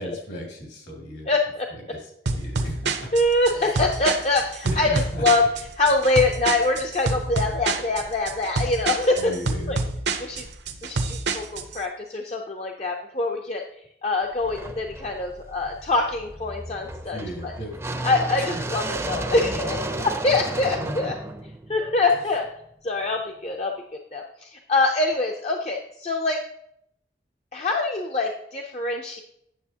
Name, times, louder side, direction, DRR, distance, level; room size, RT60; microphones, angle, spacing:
voice 1, 0.0-1.3 1.7-3.1 4.6-5.2 9.2-9.8 17.0-18.1 18.4-18.6 20.7-21.1, equal, 70° left, -1 dB, 2.4 m, -36 dB
voice 2, 1.3-1.7 3.1-5.5 5.8-9.3 9.7-9.8 10.2-10.4 10.8-13.6 14.0-17.5 18.0-21.1 21.7-22.5 22.8-23.7 24.1-26.4 27.5-29.2, left 2 dB, 35° left, 2 dB, 0.5 m, -24 dB
sound 1, 2.3-11.8, right 3 dB, 70° right, 0.7 m, -27 dB
sound 2, 14.4-22.5, right 2 dB, 15° right, 0.5 m, -33 dB
9.1 x 7.0 x 2.8 m, 0.73 s
head